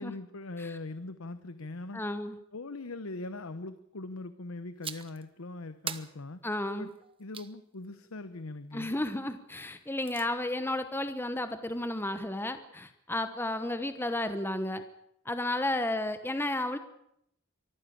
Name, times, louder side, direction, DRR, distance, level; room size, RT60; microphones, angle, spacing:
voice 1, 0.0-2.0 2.5-6.4 6.8-6.9 7.2-8.9, left 2 dB, 70° left, 12 dB, 1.0 m, -41 dB
voice 2, 1.9-2.4 6.4-6.9 8.7-14.8 15.2-16.8, left 1 dB, 10° left, 9 dB, 1.0 m, -32 dB
sound 1, 4.8-5.2 5.9-7.5 9.7-10.3, right 7 dB, 25° right, 1.1 m, -42 dB
24.0 x 14.5 x 8.6 m, 0.77 s
head